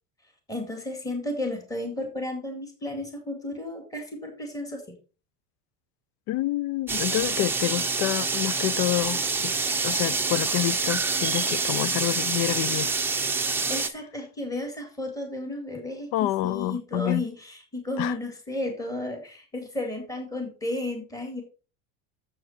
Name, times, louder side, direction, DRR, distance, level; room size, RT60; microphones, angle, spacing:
voice 1, 0.5-5.0 13.7-21.4, left 1 dB, 10° left, 2.2 m, -33 dB
voice 2, 6.3-9.6 9.8-12.9 16.1-17.2 18.0-18.1, left 15 dB, 70° left, 0.5 m, -28 dB
sound 1, 6.9-13.9, right 4 dB, 5° right, 0.7 m, -26 dB
8.8 x 7.6 x 4.3 m
cardioid pair, 155°, 35 cm